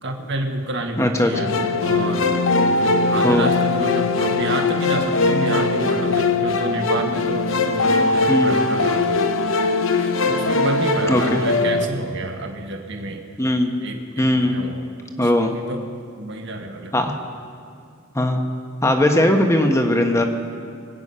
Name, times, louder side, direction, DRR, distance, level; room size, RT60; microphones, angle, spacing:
voice 1, 0.0-1.6 1.8-9.5 10.0-13.3 13.8-14.9 15.2-15.8 16.2-17.0, right 2 dB, 60° right, 4 dB, 1.6 m, -29 dB
voice 2, 1.0-1.3 3.2-3.5 8.3-8.5 11.1-11.4 13.4-13.7 14.2-14.6 15.2-15.5 16.9-17.2 18.1-18.4 18.8-20.2, left 1 dB, 15° left, 4 dB, 1.3 m, -18 dB
sound 1, 1.3-11.9, left 3 dB, 75° left, 0.8 m, -20 dB
sound 2, 1.9-7.7, left 2 dB, 45° left, 3.0 m, -38 dB
25.0 x 9.4 x 5.6 m, 2.3 s
head